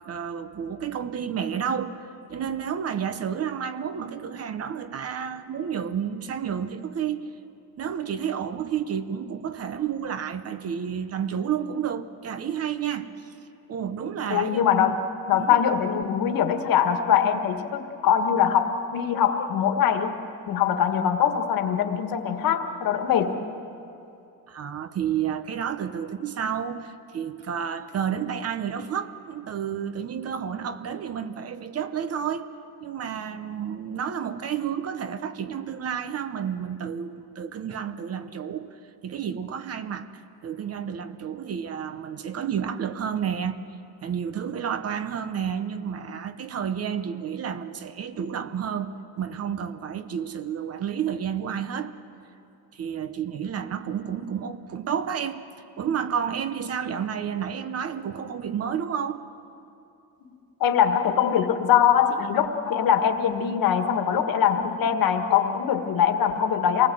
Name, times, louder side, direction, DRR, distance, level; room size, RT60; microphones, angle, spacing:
voice 1, 0.1-2.0 2.3-7.3 7.8-13.3 13.7-15.0 15.3-15.6 24.5-32.5 32.8-38.7 39.0-40.1 40.4-43.6 44.0-48.9 49.2-51.9 52.7-55.4 55.8-59.2, right 8 dB, 35° right, 0.9 m, -30 dB
voice 2, 14.3-15.0 15.3-20.2 20.5-23.3 60.6-66.9, left 8 dB, 55° left, 1.6 m, -22 dB
27.5 x 19.5 x 7.7 m
cardioid pair, 175°, 42 cm